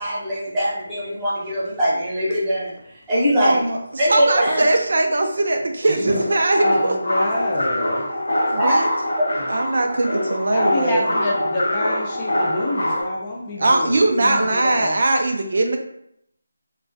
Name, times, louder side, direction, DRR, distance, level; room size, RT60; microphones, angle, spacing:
voice 1, 0.0-2.7 3.1-3.6 4.0-4.7 6.0-6.1 8.5-8.8 9.2-9.4 14.1-14.4, equal, 15° right, -9 dB, 0.8 m, -22 dB
voice 2, 3.4-7.0 8.5-8.9 9.5-11.0 13.6-15.8, right 2 dB, 60° right, 4 dB, 0.3 m, -20 dB
sound 1, 6.0-13.0, left 1 dB, 80° left, 0.8 m, -24 dB
voice 3, 6.6-8.0 10.5-15.0, left 1 dB, 25° left, -3 dB, 0.4 m, -27 dB
2.3 x 2.1 x 2.6 m, 0.74 s
figure-of-eight pair, 165°, 0 cm